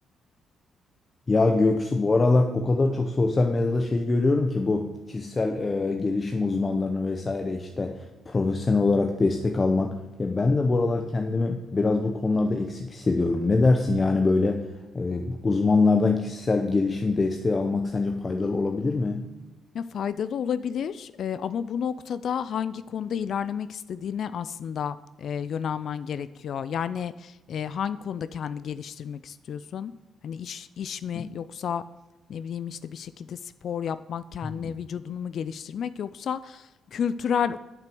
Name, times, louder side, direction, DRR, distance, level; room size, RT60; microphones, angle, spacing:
voice 1, 1.3-14.7 14.9-19.3 31.1-31.3 34.4-34.8, left 3 dB, 30° left, 4 dB, 0.7 m, -24 dB
voice 2, 19.7-29.9 30.2-31.8 32.3-37.6, left 8 dB, 60° left, 15 dB, 0.3 m, -31 dB
7.6 x 5.9 x 7.0 m, 1.1 s
cardioid pair, 90°, 0 cm